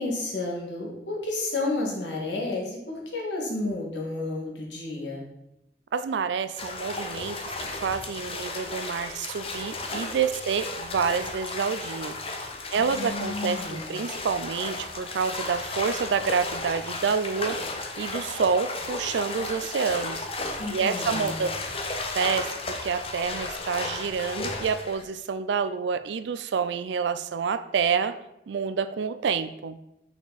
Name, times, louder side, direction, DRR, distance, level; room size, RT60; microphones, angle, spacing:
voice 1, 0.0-5.2 12.7-13.9 20.6-21.4, left 2 dB, 90° left, -1 dB, 1.9 m, -31 dB
voice 2, 5.9-12.2 12.7-17.7 18.0-20.3 20.7-21.5 22.1-28.2 28.5-29.8, right 6 dB, 85° right, 12 dB, 0.4 m, -28 dB
sound 1, 6.6-25.0, left 2 dB, 35° left, 0.7 m, -34 dB
6.0 x 5.9 x 4.0 m, 0.86 s
head